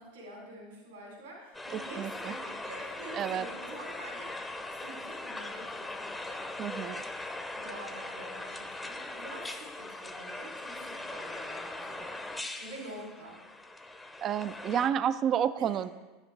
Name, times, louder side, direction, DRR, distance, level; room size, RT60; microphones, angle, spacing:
voice 1, 0.0-6.5 7.5-12.2 12.6-13.4 15.6-15.7, right 1 dB, 75° right, -2 dB, 3.0 m, -47 dB
sound 1, 1.5-14.9, left 2 dB, 10° left, 0.6 m, -40 dB
voice 2, 1.7-2.3 3.1-3.5 6.6-7.0 14.2-15.9, right 9 dB, 40° right, 14 dB, 0.3 m, -30 dB
9.9 x 7.2 x 3.3 m, 1.2 s
hypercardioid pair, 85°, 0 cm